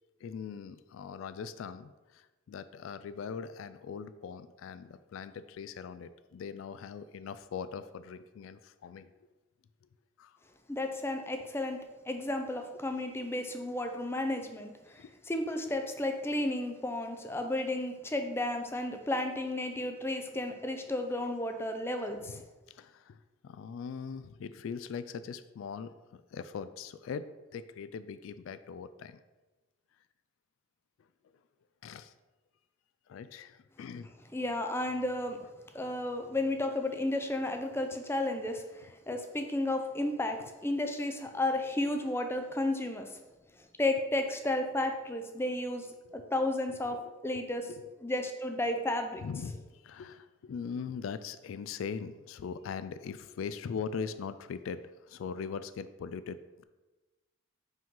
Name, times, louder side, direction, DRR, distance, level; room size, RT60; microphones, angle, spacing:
voice 1, 0.2-9.1 10.2-10.4 15.0-15.1 22.2-22.4 22.7-29.2 31.8-32.1 33.1-34.1 39.1-39.2 46.0-46.3 46.9-47.0 47.3-47.4 47.7-47.8 49.2-56.6, left 6 dB, 85° left, 13 dB, 0.3 m, -41 dB
voice 2, 10.7-11.8 12.1-22.4 34.3-35.4 35.7-43.2 43.8-45.9 46.1-47.0 47.2-47.7 48.0-49.2, left 1 dB, 10° left, 5 dB, 0.5 m, -33 dB
5.5 x 5.1 x 3.7 m, 1.1 s
head